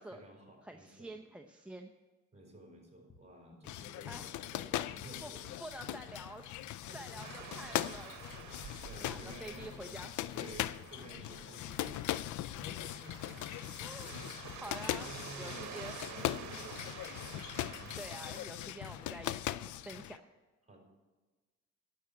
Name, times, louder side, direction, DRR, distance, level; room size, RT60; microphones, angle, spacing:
voice 1, 0.0-1.1 2.3-5.6 5.9-6.0 6.7-7.8 8.6-9.7 10.3-12.1 12.6-14.4 15.0-18.0 20.7-20.8, right 1 dB, 25° right, 1 dB, 4.8 m, -53 dB
voice 2, 0.6-1.9 4.1-4.3 5.2-5.3 5.6-6.5 6.9-8.2 8.5-8.8 9.0-10.1 12.6-12.9 13.8-14.2 14.6-15.1 15.4-16.4 18.0-20.2, right 1 dB, 5° right, 6 dB, 0.7 m, -48 dB
sound 1, 3.1-3.3 3.5-16.8, left 3 dB, 20° left, 1.1 m, -60 dB
sound 2, 3.6-20.2, left 13 dB, 75° left, 0.5 m, -40 dB
sound 3, 7.2-18.5, right 9 dB, 70° right, 1.1 m, -50 dB
11.0 x 7.0 x 8.6 m, 1.3 s
cardioid pair, 90°, 30 cm